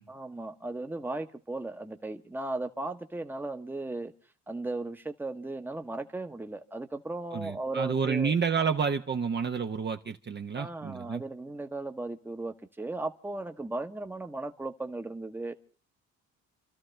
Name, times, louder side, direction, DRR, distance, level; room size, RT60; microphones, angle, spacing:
voice 1, 0.1-4.1 4.5-8.3 10.5-15.5, right 2 dB, 5° right, 1.0 m, -36 dB
voice 2, 7.3-11.2, right 6 dB, 35° right, 0.8 m, -29 dB
30.0 x 13.0 x 3.3 m
cardioid pair, 90°, 30 cm